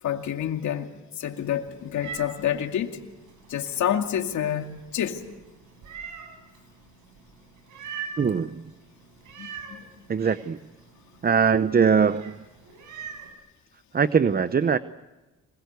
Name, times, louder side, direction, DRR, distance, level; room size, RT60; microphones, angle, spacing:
voice 1, 0.0-3.0 3.5-5.3 9.4-9.9, left 10 dB, 70° left, 2.6 m, -28 dB
Meow, 1.3-13.3, right 6 dB, 75° right, 6.5 m, -44 dB
voice 2, 8.2-8.6 10.1-10.6 11.2-12.4 13.9-14.8, right 6 dB, 30° right, 0.8 m, -21 dB
26.0 x 22.0 x 8.2 m
cardioid pair, 90°, 30 cm